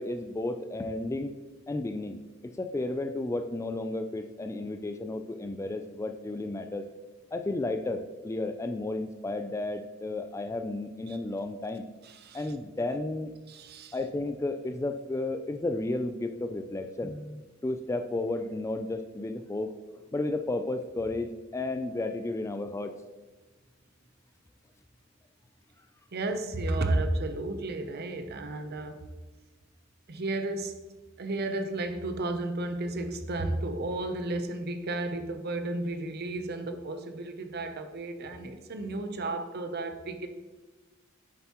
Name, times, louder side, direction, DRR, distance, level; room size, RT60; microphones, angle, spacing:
voice 1, 0.0-1.3 1.7-6.8 7.3-11.8 12.3-13.3 13.9-19.7 20.1-22.9, left 2 dB, 15° left, 8 dB, 0.3 m, -33 dB
voice 2, 12.0-12.4 13.5-14.0 26.1-29.0 30.1-30.8 31.2-40.3, right 2 dB, 50° right, 8 dB, 0.7 m, -33 dB
8.8 x 6.9 x 3.0 m, 1.2 s
head